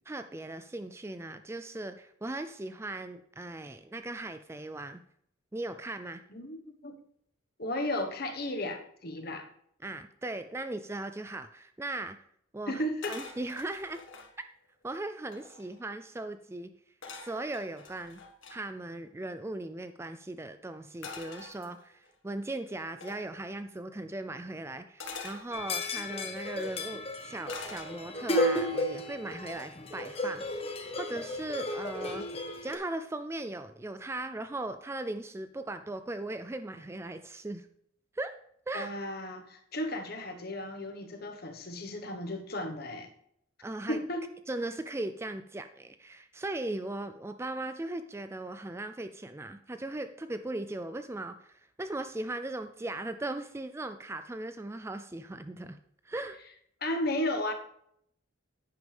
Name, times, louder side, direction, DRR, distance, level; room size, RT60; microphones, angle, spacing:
voice 1, 0.1-5.0 5.5-6.2 9.8-12.2 12.5-12.8 13.1-14.0 14.8-16.7 17.1-18.2 18.5-30.7 31.0-32.2 32.6-37.7 38.1-38.3 38.7-38.9 43.6-44.0 44.5-55.8 56.0-56.4, right 2 dB, 15° right, 10 dB, 0.3 m, -38 dB
voice 2, 6.3-7.0 7.6-9.5 12.7-13.2 38.7-43.1 43.9-44.3 56.8-57.5, left 1 dB, 50° left, 5 dB, 1.3 m, -34 dB
sound 1, 13.0-14.3 14.9-15.0 15.2-15.8 17.0-18.6 21.0-22.1 23.0-23.3 25.0-26.2 27.5-28.3 28.7-29.1, left 4 dB, 70° left, 1.7 m, -45 dB
sound 2, 25.5-32.7, left 1 dB, 30° left, 1.2 m, -33 dB
10.5 x 9.5 x 3.4 m, 0.70 s
head